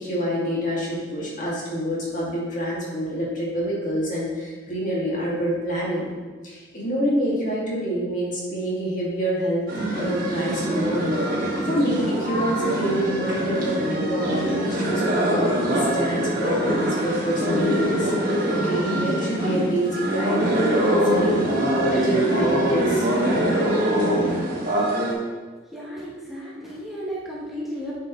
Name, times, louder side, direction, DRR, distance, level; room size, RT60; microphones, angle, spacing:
voice 1, 0.0-6.1 6.4-9.7 10.0-23.4, equal, 45° left, -6 dB, 2.1 m, -27 dB
sound 1, 9.7-25.1, right 1 dB, 50° right, 1.7 m, -23 dB
voice 2, 25.7-27.9, equal, ahead, -7 dB, 1.1 m, -34 dB
8.6 x 5.8 x 3.1 m, 1.4 s
head